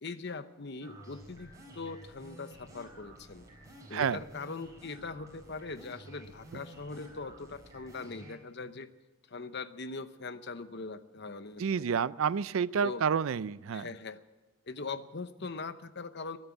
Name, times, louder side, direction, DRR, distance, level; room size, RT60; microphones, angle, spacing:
voice 1, 0.0-3.5 3.9-8.9 9.3-12.0 12.8-13.0 13.7-14.2 14.7-16.4, left 4 dB, 50° left, 12 dB, 0.8 m, -41 dB
sound 1, 0.8-8.4, right 1 dB, 15° right, 4.1 m, -52 dB
voice 2, 11.6-13.9, right 7 dB, 75° right, 19 dB, 0.4 m, -29 dB
23.0 x 8.8 x 7.2 m, 1.2 s
head